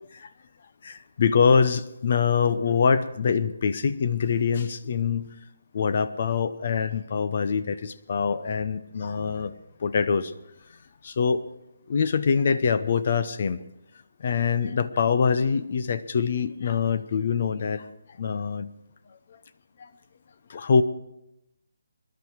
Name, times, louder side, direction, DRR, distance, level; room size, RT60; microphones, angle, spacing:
voice 1, 0.8-5.3 5.7-9.5 9.8-10.3 11.0-11.4 11.9-13.6 14.2-17.8 18.2-18.7 19.8-19.9 20.5-20.8, left 6 dB, 45° left, 14 dB, 0.8 m, -24 dB
22.0 x 11.5 x 4.7 m, 0.85 s
hypercardioid pair, 165°, 0 cm